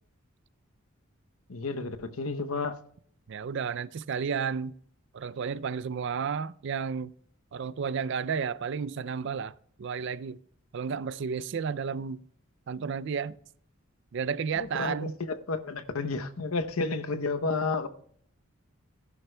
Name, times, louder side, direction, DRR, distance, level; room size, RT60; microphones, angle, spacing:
voice 1, 1.5-2.8 14.6-17.9, left 3 dB, 80° left, 0.8 m, -31 dB
voice 2, 3.3-4.8 5.1-7.1 7.5-9.5 9.8-10.4 10.7-12.2 12.7-13.3 14.1-15.1, right 6 dB, 55° right, 0.4 m, -32 dB
15.5 x 11.0 x 2.2 m
head